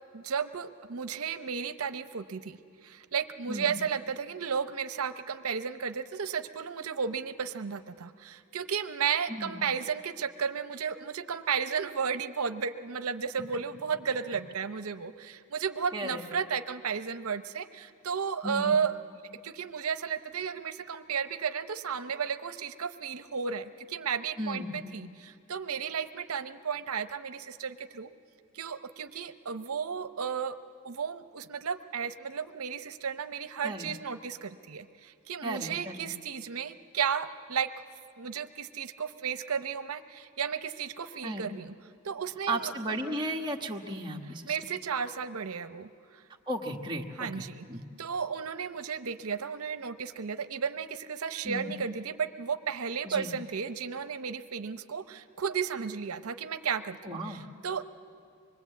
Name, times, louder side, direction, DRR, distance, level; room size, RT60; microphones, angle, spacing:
voice 1, 0.1-19.0 19.4-28.1 28.5-30.6 30.8-37.7 38.2-41.7 42.0-42.7 44.5-46.2 47.2-47.6 48.0-57.0 57.2-57.8, right 6 dB, 75° right, 11 dB, 0.7 m, -33 dB
voice 2, 9.3-9.6 15.9-16.3 18.4-18.7 24.4-25.0 33.6-33.9 35.4-36.1 41.2-41.5 42.5-44.7 46.5-47.8 51.4-51.7 53.0-53.3 57.0-57.5, right 1 dB, 20° right, 0 dB, 1.4 m, -35 dB
25.0 x 22.0 x 8.3 m, 2.3 s
head